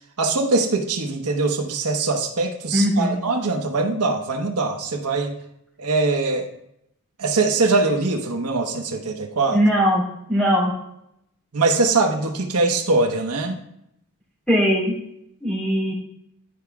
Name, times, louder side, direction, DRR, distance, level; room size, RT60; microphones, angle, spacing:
voice 1, 0.2-5.3 5.8-6.5 7.2-9.6 11.5-13.6, right 3 dB, 90° right, 2 dB, 0.9 m, -22 dB
voice 2, 2.7-3.1 9.5-10.0 10.3-10.7 14.5-14.9 15.4-15.9, equal, 5° left, -5 dB, 2.5 m, -19 dB
11.0 x 4.8 x 3.5 m, 0.78 s
head